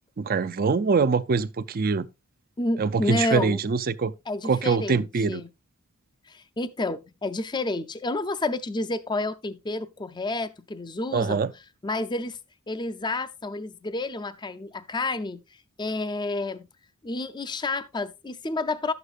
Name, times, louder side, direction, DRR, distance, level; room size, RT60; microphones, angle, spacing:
voice 1, 0.2-2.1 2.8-4.1 4.4-5.4 11.1-11.5, right 4 dB, 40° right, 0.4 m, -24 dB
voice 2, 2.6-3.6 4.3-5.5 6.3-11.4 11.8-12.4 12.7-15.4 15.8-16.7 17.0-18.9, left 2 dB, 20° left, 0.5 m, -30 dB
12.0 x 8.1 x 2.4 m
head